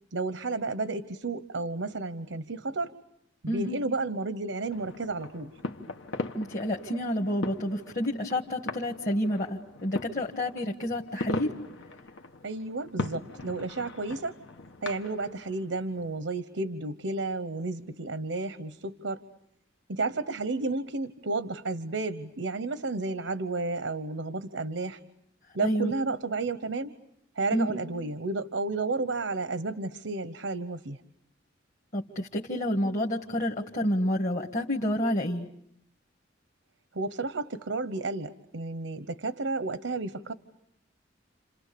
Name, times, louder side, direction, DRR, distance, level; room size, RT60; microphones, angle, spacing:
voice 1, 0.1-2.9 3.4-5.5 12.4-14.4 14.8-19.2 19.9-25.0 25.5-26.9 27.4-31.0 36.9-40.3, right 3 dB, 85° right, 12 dB, 1.0 m, -32 dB
voice 2, 3.5-3.8 6.3-11.5 25.6-25.9 27.5-27.8 31.9-35.5, equal, 45° left, 0 dB, 1.6 m, -29 dB
sound 1, 4.7-16.2, left 2 dB, 85° left, 1.4 m, -40 dB
30.0 x 27.5 x 6.8 m, 0.75 s
head